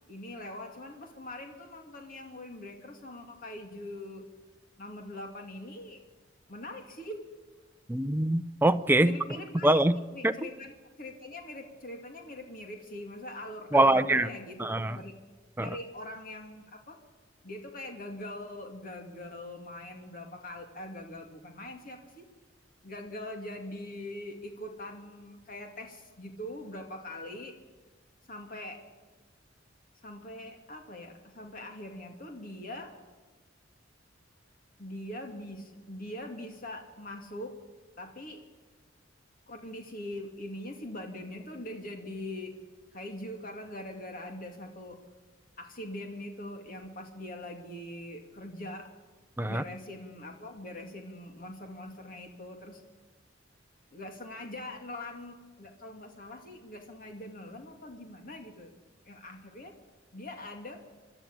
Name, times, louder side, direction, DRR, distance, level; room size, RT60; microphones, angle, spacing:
voice 1, 0.1-4.2 4.8-6.0 6.5-7.2 9.0-15.1 15.6-17.0 17.4-22.2 22.8-27.5 28.3-28.8 30.0-32.9 34.8-37.6 38.0-38.4 39.5-42.5 42.9-45.0 45.6-48.9 49.4-52.8 53.9-58.7 59.0-59.7 60.1-60.8, left 1 dB, 45° left, 3 dB, 2.5 m, -42 dB
voice 2, 7.9-9.1 9.6-9.9 10.2-10.3 13.7-14.3 14.6-15.0 15.6-15.7 49.4-49.6, right 1 dB, 10° right, 11 dB, 0.6 m, -23 dB
25.0 x 12.5 x 8.7 m, 1.3 s
head